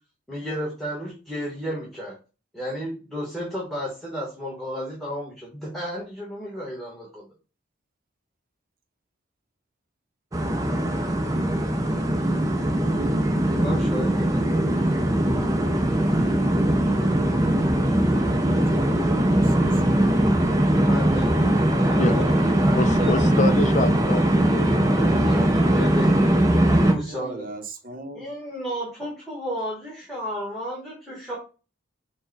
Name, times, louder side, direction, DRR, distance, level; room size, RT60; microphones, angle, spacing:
voice 1, 0.3-2.1 2.5-7.2 13.4-15.0 20.7-21.5 21.9-22.3 22.6-23.3 25.3-26.2 26.8-27.5 28.1-31.4, equal, ahead, 1.1 m, -33 dB
sound 1, 10.3-26.9, right 1 dB, 15° right, 0.5 m, -21 dB
voice 2, 18.4-19.9 27.1-28.3, right 2 dB, 45° right, 0.8 m, -39 dB
voice 3, 21.7-22.4 22.7-25.6, left 3 dB, 35° left, 0.4 m, -28 dB
4.5 x 2.2 x 4.5 m
head